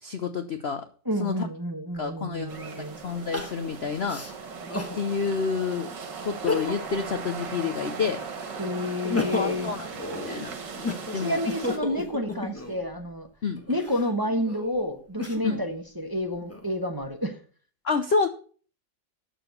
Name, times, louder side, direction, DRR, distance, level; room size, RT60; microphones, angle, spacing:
voice 1, 0.0-0.9 1.2-1.5 1.9-2.7 3.0-4.2 4.9-5.9 6.2-8.2 9.3-9.9 10.3-10.5 10.9-11.4 13.4-13.6 15.4-15.6 17.8-18.3, left 5 dB, 55° left, 8 dB, 0.7 m, -28 dB
voice 2, 1.0-3.0 8.6-9.7 11.1-13.3 13.7-17.4, equal, 15° right, 5 dB, 0.9 m, -29 dB
Crying sobbing, 2.0-2.1 3.3-5.0 5.5-5.6 6.3-7.0 7.4-8.4 8.9-12.9 13.6-15.6 16.2-17.0, left 2 dB, 10° left, 1.3 m, -33 dB
sound 1, 2.5-11.8, right 5 dB, 70° right, 2.2 m, -38 dB
9.0 x 6.9 x 6.7 m, 0.41 s
omnidirectional pair, 2.0 m